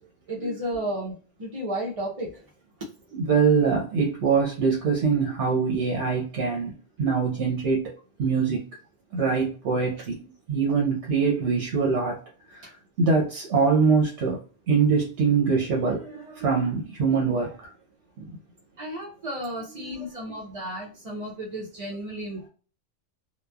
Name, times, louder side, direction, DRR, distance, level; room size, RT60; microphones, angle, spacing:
voice 1, 0.3-2.3 18.8-22.5, right 1 dB, 35° right, -5 dB, 0.7 m, -33 dB
voice 2, 3.1-6.7 7.0-7.8 8.2-8.6 9.1-10.2 10.5-12.2 13.0-14.4 14.7-17.5 18.2-18.3 19.8-19.9, right 5 dB, 70° right, -2 dB, 1.0 m, -23 dB
3.0 x 2.2 x 2.2 m, 0.38 s
omnidirectional pair, 1.2 m